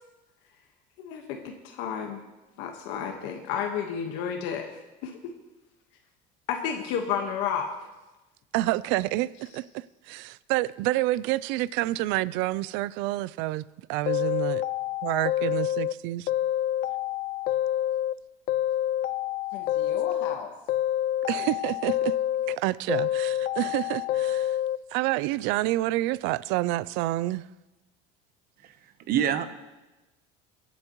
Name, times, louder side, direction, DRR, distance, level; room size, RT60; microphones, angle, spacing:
voice 1, 1.0-2.2 2.6-4.7 5.0-5.2 6.5-7.7 19.5-20.5, left 7 dB, 70° left, 1.4 m, -32 dB
voice 2, 8.5-9.3 10.1-13.6 13.9-14.6 15.0-16.3 21.3-22.2 22.5-24.6 24.9-27.5, right 17 dB, 70° right, 0.4 m, -28 dB
sound 1, 14.1-15.9 16.3-18.2 18.5-20.4 20.7-22.6 22.9-24.8, left 12 dB, 45° left, 0.4 m, -27 dB
voice 3, 28.6-29.4, right 9 dB, 50° right, 0.9 m, -27 dB
24.0 x 9.2 x 3.1 m
cardioid pair, 150°, 20 cm